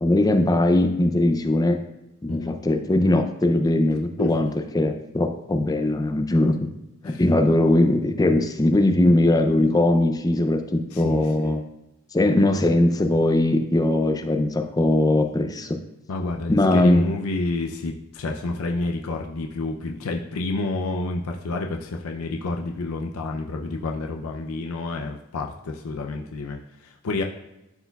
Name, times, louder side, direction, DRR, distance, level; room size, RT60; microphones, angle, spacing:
voice 1, 0.0-1.8 2.2-4.5 4.7-6.7 7.0-11.6 12.1-15.8 16.5-17.1, left 1 dB, 15° left, 6 dB, 0.4 m, -20 dB
voice 2, 10.9-11.6 16.1-27.2, left 2 dB, 70° left, 2 dB, 0.5 m, -29 dB
11.5 x 4.4 x 2.3 m, 0.95 s
head